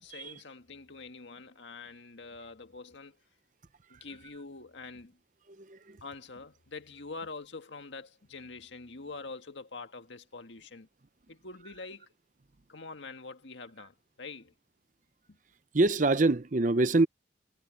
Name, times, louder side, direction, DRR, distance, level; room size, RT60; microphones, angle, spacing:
voice 1, 0.0-3.2 3.9-5.2 6.0-10.9 11.3-12.1 12.7-14.5 15.3-15.4, left 3 dB, 80° left, 1.8 m, -45 dB
voice 2, 5.6-6.0 15.7-17.1, right 2 dB, 45° right, 0.7 m, -25 dB
head